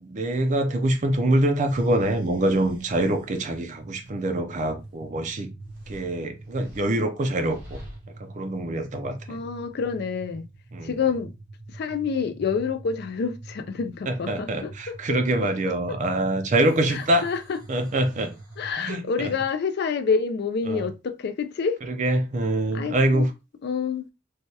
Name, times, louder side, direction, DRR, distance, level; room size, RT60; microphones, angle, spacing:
voice 1, 0.0-5.5 5.9-7.8 8.2-9.4 10.7-11.0 14.1-17.3 17.7-18.3 18.8-19.3 20.7-20.9 21.9-23.3, right 1 dB, 40° right, 0.5 m, -25 dB
sound 1, 1.7-18.7, right 2 dB, 80° right, 1.7 m, -44 dB
voice 2, 9.3-10.4 10.8-11.3 11.7-15.2 15.9-16.0 16.9-17.6 18.6-21.8 22.7-23.3 23.6-24.1, left 5 dB, 55° left, 0.4 m, -28 dB
3.2 x 2.2 x 2.7 m
head